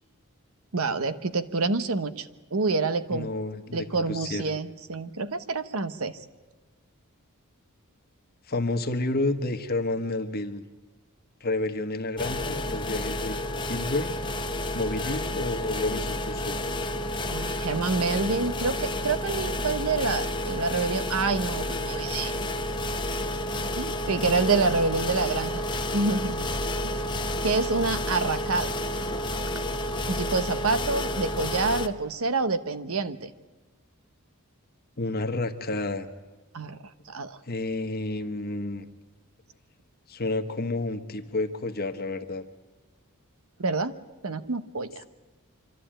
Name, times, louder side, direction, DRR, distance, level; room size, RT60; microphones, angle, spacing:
voice 1, 0.7-2.3 2.5-3.3 3.7-6.2 17.3-22.3 23.8-25.6 25.9-26.4 26.8-26.9 27.4-28.7 30.1-33.3 36.5-36.8 37.1-37.4 43.6-43.9 44.2-45.0, right 3 dB, 70° right, 11 dB, 1.0 m, -27 dB
voice 2, 3.1-4.5 8.5-10.6 11.4-13.4 13.6-14.1 14.7-16.6 35.0-36.1 37.5-38.9 40.1-42.4, left 2 dB, 45° left, 8 dB, 1.3 m, -30 dB
sound 1, 12.2-31.9, left 1 dB, 20° left, 0.9 m, -30 dB
26.0 x 12.5 x 8.9 m, 1.3 s
head